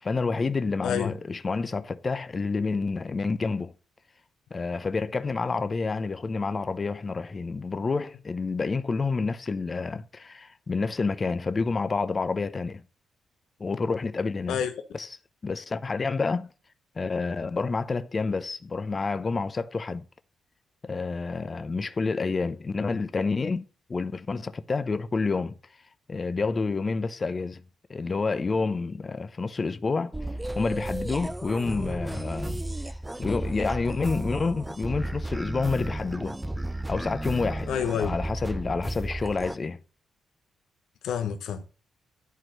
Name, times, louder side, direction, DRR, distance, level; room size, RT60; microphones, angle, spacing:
voice 1, 0.0-3.7 4.5-12.8 13.6-14.6 14.9-15.1 15.4-16.5 17.0-20.0 20.8-23.6 23.9-25.5 26.1-27.6 27.9-30.1 30.6-36.4 36.9-39.8, left 4 dB, 35° left, 0.7 m, -29 dB
sound 1, 30.1-39.6, right 1 dB, 10° right, 0.5 m, -33 dB
voice 2, 37.7-38.1 41.0-41.7, left 8 dB, 80° left, 1.1 m, -28 dB
11.0 x 4.4 x 7.5 m
cardioid pair, 75°, 0 cm